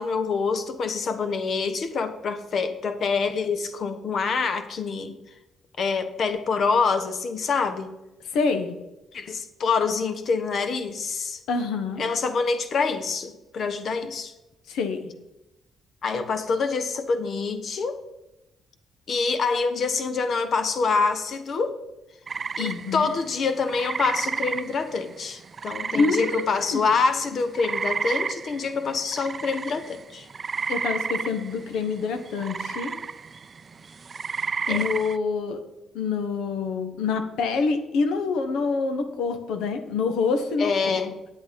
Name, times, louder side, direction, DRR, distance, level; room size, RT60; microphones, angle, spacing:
voice 1, 0.0-5.2 5.8-7.9 9.1-11.4 12.0-14.3 16.0-18.0 19.1-21.8 22.6-30.3 34.7-34.9 40.6-41.1, left 4 dB, 55° left, 10 dB, 1.1 m, -26 dB
voice 2, 8.3-8.7 11.5-12.0 14.7-15.1 22.6-23.1 25.9-26.8 30.7-32.9 34.7-35.6 35.9-41.0, left 4 dB, 90° left, 7 dB, 1.2 m, -26 dB
sound 1, 22.3-27.0 27.2-35.2, right 5 dB, 40° right, 0.4 m, -32 dB
8.7 x 8.0 x 5.2 m, 0.97 s
cardioid pair, 90°, 0 cm